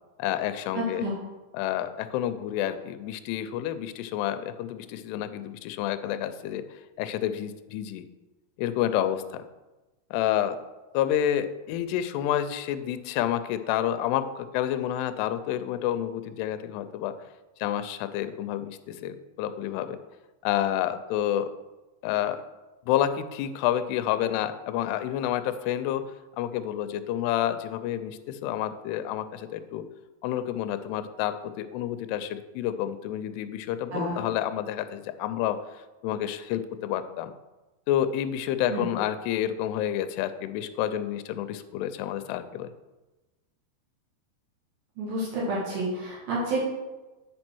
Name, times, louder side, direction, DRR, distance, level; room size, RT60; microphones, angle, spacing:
voice 1, 0.2-1.1 1.5-8.0 8.6-9.4 10.1-10.6 10.9-17.1 17.6-20.0 20.4-21.5 22.0-22.4 22.9-29.9 30.2-35.6 36.0-37.3 37.9-42.7, left 11 dB, 85° left, 11 dB, 2.7 m, -29 dB
voice 2, 0.8-1.2 33.9-34.2 38.7-38.9 45.0-46.6, right 1 dB, 65° right, -5 dB, 3.5 m, -29 dB
8.6 x 5.3 x 6.1 m, 1.1 s
omnidirectional pair, 4.7 m